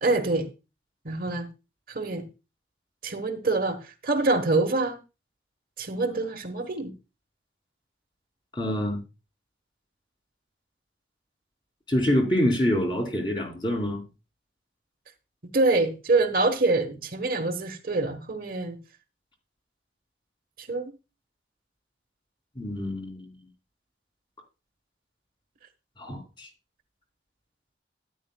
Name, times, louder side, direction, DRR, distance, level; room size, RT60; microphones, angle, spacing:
voice 1, 0.0-0.5 1.0-1.5 1.9-2.3 3.0-5.0 5.8-6.9 15.5-18.8 20.6-20.9, right 3 dB, 50° right, 1.2 m, -25 dB
voice 2, 8.5-9.0 11.9-14.0 22.6-23.3 26.0-26.5, left 1 dB, 25° left, 2.8 m, -26 dB
12.5 x 9.7 x 2.2 m
head